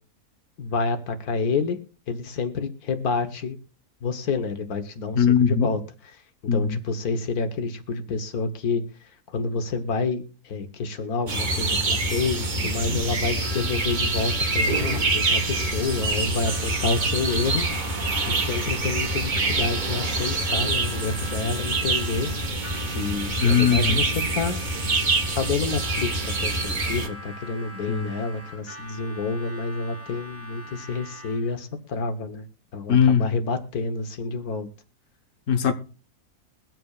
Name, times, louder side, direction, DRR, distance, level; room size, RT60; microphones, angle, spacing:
voice 1, 0.6-1.8 2.1-3.6 4.0-6.2 6.5-17.7 18.3-22.3 22.9-24.6 25.3-32.4 32.7-34.7, left 4 dB, 85° left, 1.6 m, -29 dB
voice 2, 5.1-5.7 6.5-6.8 12.9-13.0 23.4-24.0 27.9-28.1 32.9-33.4 35.5-35.7, left 7 dB, 60° left, 1.4 m, -20 dB
sound 1, 11.3-27.1, right 2 dB, 35° right, 1.3 m, -26 dB
Harmonica, 13.4-31.6, left 1 dB, 10° left, 2.3 m, -42 dB
22.5 x 7.6 x 2.4 m
omnidirectional pair, 1.5 m